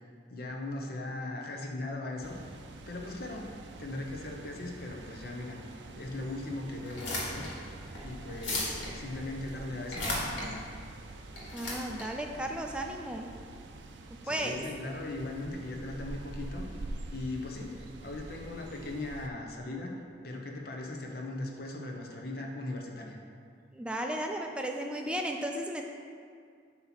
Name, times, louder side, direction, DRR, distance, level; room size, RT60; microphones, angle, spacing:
voice 1, 0.3-2.4 2.9-3.5 3.8-5.6 6.0-7.5 8.0-10.7 14.2-16.8 17.1-19.9 20.2-23.2, left 2 dB, 55° left, 1 dB, 0.8 m, -39 dB
sound 1, 2.2-19.3, right 2 dB, 70° right, 0.5 m, -46 dB
sound 2, 6.8-13.3, left 1 dB, 80° left, 1.6 m, -37 dB
voice 2, 11.5-13.3 14.3-14.6 23.7-25.8, right 1 dB, 5° right, 2 dB, 0.4 m, -34 dB
8.0 x 2.9 x 5.8 m, 2.2 s
head